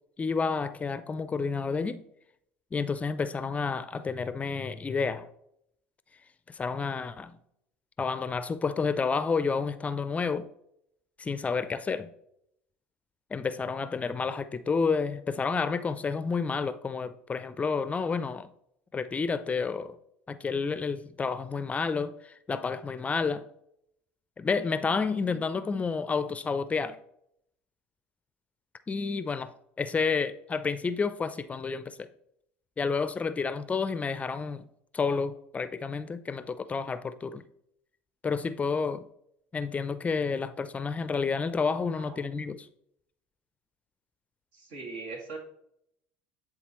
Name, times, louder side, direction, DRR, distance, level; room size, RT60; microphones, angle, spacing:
voice 1, 0.2-2.0 2.7-5.3 6.5-7.3 8.0-10.5 11.2-12.1 13.3-18.5 18.9-20.0 20.3-23.5 24.4-27.0 28.9-29.5 29.8-32.1 32.8-34.6 34.9-37.4 38.2-39.1 39.5-42.7, left 5 dB, 25° left, 0.4 m, -30 dB
voice 2, 44.5-45.4, right 3 dB, 75° right, 1.9 m, -40 dB
10.5 x 3.7 x 3.0 m
supercardioid pair, 85°, 6 cm